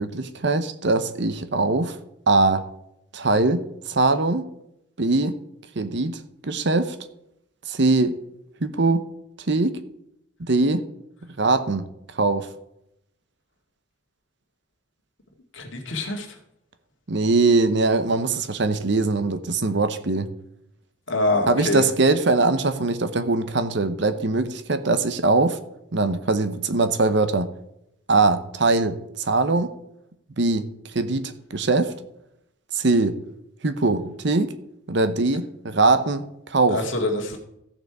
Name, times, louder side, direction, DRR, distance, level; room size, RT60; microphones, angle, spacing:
voice 1, 0.0-2.0 2.3-2.7 3.1-4.5 5.0-5.3 5.8-7.0 7.7-8.2 8.6-9.0 9.5-9.8 10.5-10.8 11.4-11.9 12.1-12.5 17.1-20.3 21.5-25.6 25.9-27.5 28.1-29.7 30.4-30.7 30.9-31.9 32.7-33.2 33.6-34.5 34.9-36.8, right 3 dB, 55° right, 11 dB, 0.8 m, -21 dB
voice 2, 15.5-16.4 21.1-21.8 36.7-37.4, left 2 dB, 65° left, 3 dB, 2.1 m, -25 dB
14.5 x 6.7 x 4.8 m, 0.81 s
head